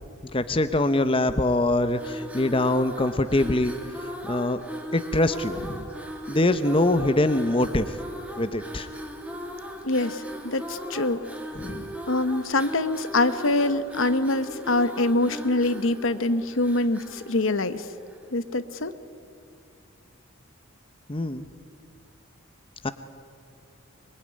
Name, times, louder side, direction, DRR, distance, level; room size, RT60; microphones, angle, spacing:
voice 1, 0.3-3.8 4.3-4.6 4.9-5.8 6.3-7.9 8.4-8.9 11.5-11.8 21.1-21.5 22.8-22.9, left 1 dB, 25° left, 10 dB, 0.8 m, -23 dB
sound 1, 1.9-18.3, equal, 5° right, 2.1 m, -38 dB
voice 2, 9.8-11.2 12.1-17.8 18.3-18.9, left 2 dB, 65° left, 12 dB, 1.1 m, -24 dB
24.5 x 22.5 x 9.7 m, 2.4 s
head